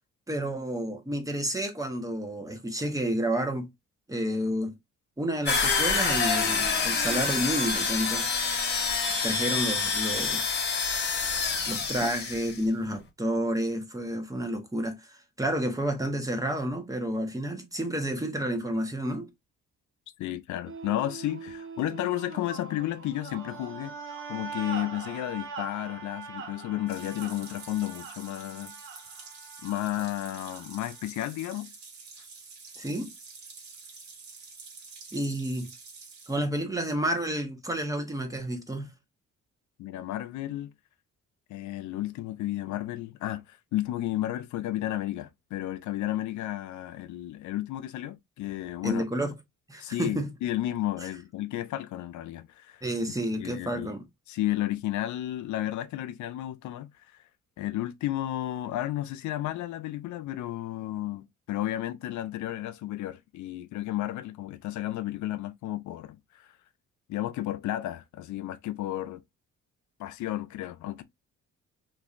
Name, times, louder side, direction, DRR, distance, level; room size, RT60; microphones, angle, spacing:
voice 1, 0.3-3.7 4.1-4.7 5.2-8.3 9.2-10.6 11.7-19.3 32.8-33.1 35.1-35.7 36.3-38.9 48.8-49.3 49.7-50.3 52.8-54.0, right 1 dB, 10° right, 0.8 m, -30 dB
sound 1, 5.5-12.6, left 5 dB, 35° left, 1.2 m, -27 dB
voice 2, 20.2-24.0 24.3-28.7 29.6-31.7 39.8-40.7 41.5-49.0 49.8-52.8 53.4-53.9 54.3-57.2 57.6-66.5 67.1-69.2 70.0-71.0, left 14 dB, 70° left, 0.4 m, -32 dB
sound 2, 20.7-31.1, right 5 dB, 45° right, 0.6 m, -42 dB
sound 3, 26.9-36.4, right 4 dB, 65° right, 1.4 m, -47 dB
3.2 x 2.5 x 2.4 m
cardioid pair, 90°, 30 cm